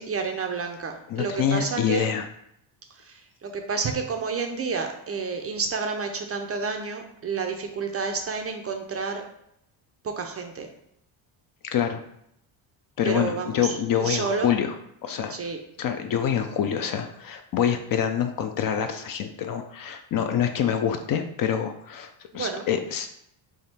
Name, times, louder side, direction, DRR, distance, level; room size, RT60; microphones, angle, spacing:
voice 1, 0.0-2.1 2.9-9.2 10.0-10.7 13.0-14.5 15.3-15.6 22.3-22.7, right 4 dB, 30° right, 4 dB, 0.4 m, -30 dB
voice 2, 1.1-2.2 11.6-12.0 13.0-14.7 15.0-15.4 15.8-23.1, left 8 dB, 45° left, 6 dB, 0.4 m, -26 dB
3.5 x 2.4 x 4.0 m, 0.75 s
supercardioid pair, 85°, 50 cm